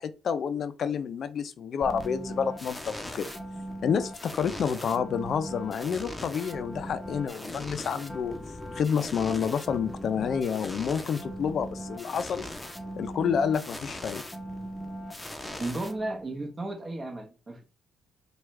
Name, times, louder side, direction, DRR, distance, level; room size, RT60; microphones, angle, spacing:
voice 1, 0.0-3.3 3.8-8.4 8.7-12.5 13.0-14.2, left 7 dB, 60° left, 0.4 m, -29 dB
sound 1, 1.8-16.5, equal, 10° left, 0.8 m, -39 dB
voice 2, 15.6-17.6, right 2 dB, 30° right, 1.1 m, -34 dB
4.7 x 2.3 x 3.2 m
cardioid pair, 90°, 0 cm